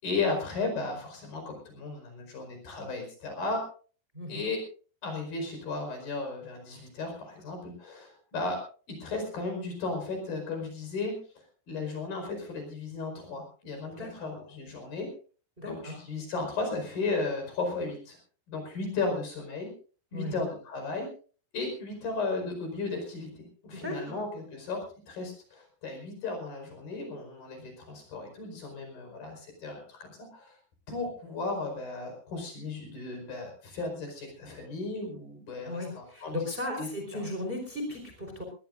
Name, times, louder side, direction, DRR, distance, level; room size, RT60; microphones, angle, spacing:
voice 1, 0.0-3.6 4.3-4.6 5.0-8.6 9.0-11.2 11.7-15.1 15.6-18.2 18.5-19.7 20.1-21.1 21.5-30.6 30.9-36.9 37.1-37.2, left 3 dB, 60° left, 4 dB, 6.6 m, -35 dB
voice 2, 15.6-16.0 20.1-20.4 23.7-24.1 35.7-38.4, left 1 dB, 15° right, 2 dB, 4.1 m, -36 dB
21.0 x 20.0 x 2.6 m, 0.39 s
omnidirectional pair, 4.7 m